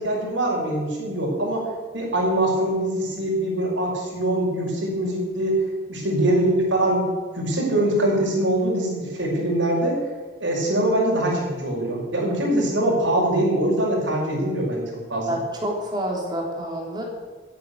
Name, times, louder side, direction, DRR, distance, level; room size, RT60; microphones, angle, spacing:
voice 1, 0.0-1.7 1.9-5.6 5.9-10.0 10.4-14.8 15.1-15.4, right 1 dB, 75° right, -2 dB, 5.8 m, -23 dB
voice 2, 6.3-6.6 15.3-17.0, right 1 dB, 20° right, -1 dB, 3.3 m, -29 dB
13.5 x 9.0 x 8.3 m, 1.4 s
head